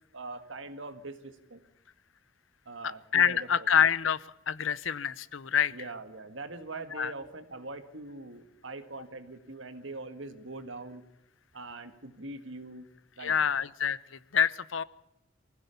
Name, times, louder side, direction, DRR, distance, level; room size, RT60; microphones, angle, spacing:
voice 1, 0.1-1.6 2.7-3.7 5.7-11.0 11.5-12.9 13.2-13.5, right 2 dB, 70° right, 10 dB, 1.7 m, -42 dB
voice 2, 2.8-5.7 7.0-7.1 13.2-14.8, left 8 dB, 80° left, 19 dB, 0.7 m, -27 dB
23.5 x 16.0 x 7.0 m, 0.89 s
head